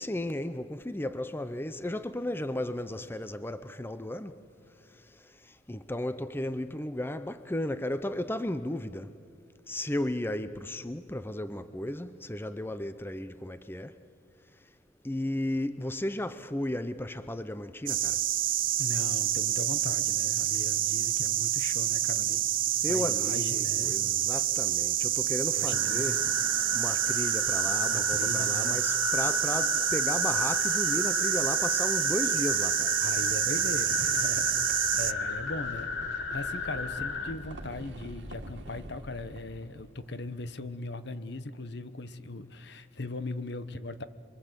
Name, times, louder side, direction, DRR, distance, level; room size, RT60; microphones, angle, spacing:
voice 1, 0.0-4.4 5.4-9.1 9.7-13.9 15.0-18.2 22.8-26.3 26.7-33.0, left 1 dB, 10° left, 0.7 m, -34 dB
sound 1, 17.9-35.1, right 13 dB, 50° right, 0.6 m, -28 dB
voice 2, 18.8-22.4 22.9-24.0 25.6-26.2 27.9-28.8 33.0-34.6 34.9-35.9 36.3-44.0, left 2 dB, 65° left, 1.1 m, -39 dB
sound 2, 25.7-37.3, left 4 dB, 85° left, 2.3 m, -33 dB
sound 3, 28.8-40.9, right 1 dB, 70° right, 2.3 m, -48 dB
28.0 x 23.0 x 8.2 m
head